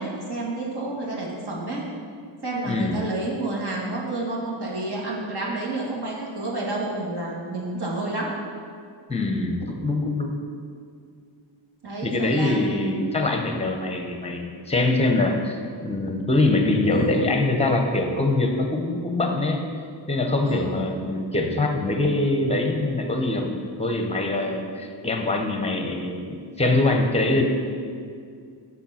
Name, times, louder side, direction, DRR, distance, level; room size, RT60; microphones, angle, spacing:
voice 1, 0.0-1.8 2.4-8.3 11.8-13.0 16.9-17.3 20.5-20.7, right 2 dB, 55° right, -4 dB, 1.8 m, -30 dB
voice 2, 2.6-3.0 9.1-10.4 12.0-19.6 20.1-27.4, left 2 dB, 15° left, 3 dB, 0.8 m, -23 dB
7.2 x 4.1 x 5.7 m, 2.2 s
cardioid pair, 80°, 48 cm